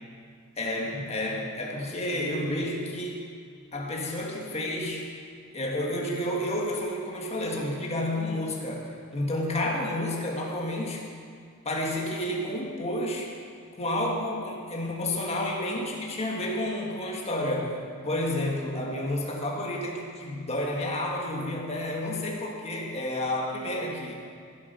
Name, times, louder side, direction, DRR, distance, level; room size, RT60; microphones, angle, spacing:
voice 1, 0.6-3.3 3.7-5.1 5.5-11.0 11.6-13.3 13.8-17.8 18.0-24.1, left 1 dB, 30° left, -1 dB, 1.5 m, -30 dB
16.0 x 7.7 x 5.4 m, 2.1 s
head